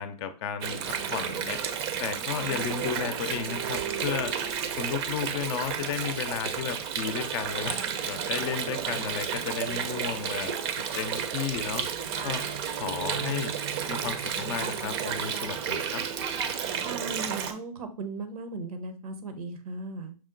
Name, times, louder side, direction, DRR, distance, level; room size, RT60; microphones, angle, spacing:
voice 1, 0.0-1.6 2.0-4.3 4.8-7.8 8.0-10.6 10.9-11.9 12.2-12.5 12.8-13.5 13.9-16.0, left 8 dB, 45° left, 10 dB, 0.6 m, -33 dB
Water, 0.6-17.5, right 7 dB, 45° right, 0.6 m, -32 dB
voice 2, 16.8-20.2, right 3 dB, 75° right, 8 dB, 1.0 m, -37 dB
6.1 x 2.1 x 3.8 m, 0.37 s
hypercardioid pair, 125°, 19 cm